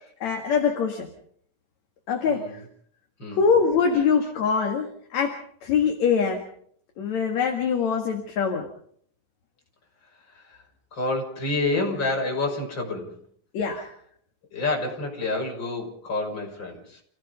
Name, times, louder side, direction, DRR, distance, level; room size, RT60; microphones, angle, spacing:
voice 1, 0.2-1.1 2.1-2.4 3.3-6.5 7.0-8.7 13.5-13.9, left 6 dB, 55° left, 3 dB, 3.0 m, -23 dB
voice 2, 2.3-2.6 3.2-3.5 10.3-10.6 10.9-13.1 14.5-17.0, left 2 dB, 30° left, 0 dB, 6.5 m, -28 dB
29.0 x 17.0 x 5.3 m, 0.63 s
omnidirectional pair, 4.0 m